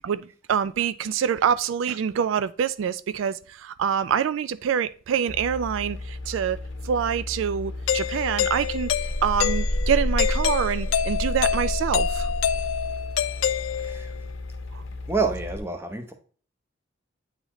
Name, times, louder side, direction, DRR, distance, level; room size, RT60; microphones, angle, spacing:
voice 1, 0.0-6.6 6.8-8.9 9.2-12.3 14.7-14.8, right 8 dB, 80° right, 0.3 m, -26 dB
sound 1, 5.3-15.6, left 1 dB, 70° left, 0.8 m, -30 dB
Doorbell, 7.9-14.2, left 9 dB, 85° left, 0.4 m, -27 dB
voice 2, 13.8-14.1 15.1-16.1, right 4 dB, 10° right, 0.7 m, -28 dB
8.8 x 4.0 x 3.0 m
head